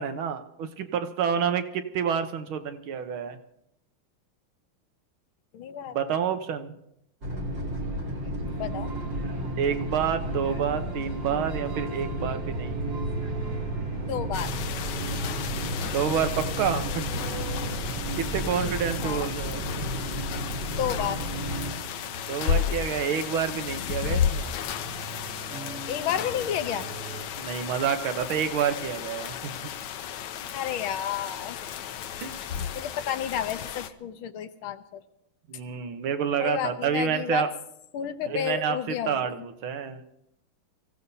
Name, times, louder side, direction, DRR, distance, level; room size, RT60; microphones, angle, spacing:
voice 1, 0.0-3.4 5.9-6.7 9.6-12.8 15.8-17.0 18.2-19.9 22.3-24.5 27.3-29.5 32.2-32.7 35.5-37.5 38.3-40.0, right 7 dB, 85° right, 8 dB, 1.8 m, -28 dB
voice 2, 5.5-6.0 8.5-8.9 14.1-14.5 19.0-19.3 20.8-21.2 25.9-26.9 30.5-31.6 32.7-35.0 36.4-37.5 37.9-39.5, left 9 dB, 90° left, 10 dB, 1.7 m, -31 dB
sound 1, 7.2-21.7, equal, 60° right, 2.9 m, -33 dB
sound 2, 8.4-27.2, right 6 dB, 45° right, 1.4 m, -41 dB
sound 3, 14.3-33.9, left 8 dB, 70° left, 1.2 m, -33 dB
24.0 x 15.5 x 2.8 m, 0.80 s
omnidirectional pair, 2.2 m